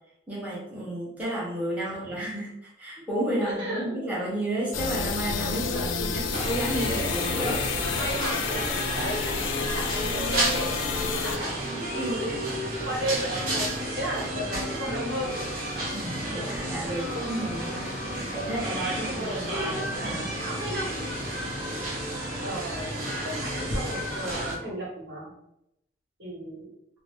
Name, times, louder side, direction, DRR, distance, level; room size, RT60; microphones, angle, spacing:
voice 1, 0.3-7.6 11.9-12.2 15.9-18.0 18.3-19.6 20.0-20.3, right 1 dB, 10° right, -7 dB, 0.7 m, -32 dB
voice 2, 1.8-2.2 3.4-4.1 5.4-6.4 7.9-11.5 11.9-12.4 12.8-15.4 19.0-21.1 22.4-25.3 26.2-26.7, right 1 dB, 80° right, -5 dB, 1.2 m, -35 dB
sound 1, 4.7-11.4, left 5 dB, 90° left, 0.3 m, -30 dB
sound 2, 6.3-24.5, right 1 dB, 45° right, 0.9 m, -31 dB
2.5 x 2.0 x 3.3 m, 0.82 s
head